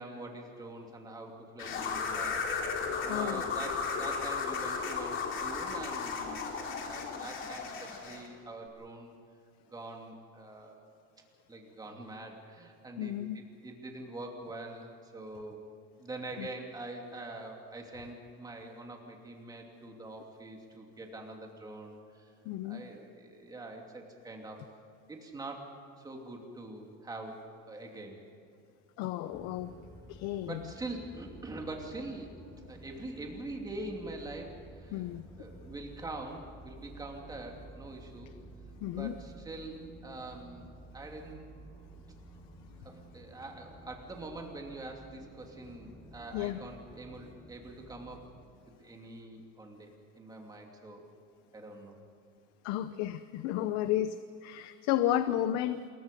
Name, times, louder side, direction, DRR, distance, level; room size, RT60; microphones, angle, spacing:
voice 1, 0.0-2.4 3.0-9.1 9.7-10.8 11.5-15.6 16.0-22.3 22.6-24.7 25.1-25.7 26.0-27.4 27.7-28.2 30.5-32.4 32.7-35.1 35.4-38.3 38.9-39.8 40.0-41.5 42.8-48.3 48.7-51.0 51.5-52.0, right 2 dB, 10° right, 1 dB, 2.7 m, -44 dB
sound 1, 1.6-8.3, left 5 dB, 40° left, 3.2 m, -35 dB
voice 2, 3.1-3.4 13.0-13.4 16.4-16.5 22.4-22.8 29.0-29.7 30.1-30.6 34.9-35.5 38.8-39.1 46.3-46.6 52.6-54.2 54.4-55.8, left 12 dB, 60° left, 11 dB, 0.8 m, -32 dB
sound 2, 29.3-48.4, right 1 dB, 10° left, 3.6 m, -52 dB
28.0 x 22.5 x 5.3 m, 2.4 s
cardioid pair, 170°, 31 cm